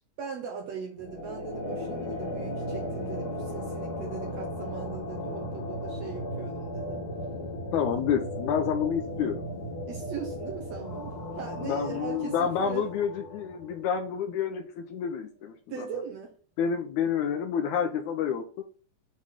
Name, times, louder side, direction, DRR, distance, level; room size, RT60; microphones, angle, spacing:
voice 1, 0.2-7.0 9.9-12.9 15.7-16.3, right 7 dB, 70° right, 1.7 m, -39 dB
sound 1, 1.0-14.1, left 1 dB, 45° left, 1.4 m, -36 dB
voice 2, 7.7-9.4 11.6-15.9 16.6-18.6, left 7 dB, 75° left, 1.9 m, -29 dB
8.4 x 3.2 x 3.6 m
omnidirectional pair, 3.9 m